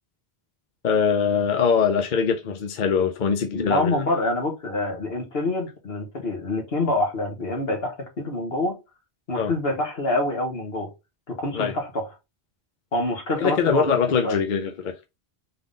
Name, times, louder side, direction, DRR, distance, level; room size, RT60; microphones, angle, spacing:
voice 1, 0.8-4.0 9.4-9.5 11.5-11.7 13.4-14.9, left 6 dB, 55° left, 0.7 m, -22 dB
voice 2, 3.5-8.8 9.3-10.9 11.3-12.1 12.9-14.0 14.2-14.4, left 2 dB, 70° left, 1.7 m, -26 dB
3.8 x 3.7 x 3.7 m
omnidirectional pair, 1.0 m